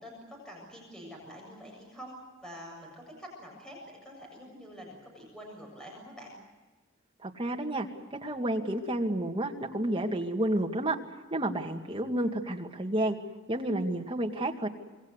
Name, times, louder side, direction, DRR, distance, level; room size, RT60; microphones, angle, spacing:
voice 1, 0.0-6.3, equal, 5° left, -1 dB, 7.2 m, -46 dB
voice 2, 7.2-11.0 11.3-13.2 13.5-14.7, right 1 dB, 25° right, 2 dB, 2.3 m, -30 dB
27.0 x 22.0 x 8.2 m, 1.3 s
head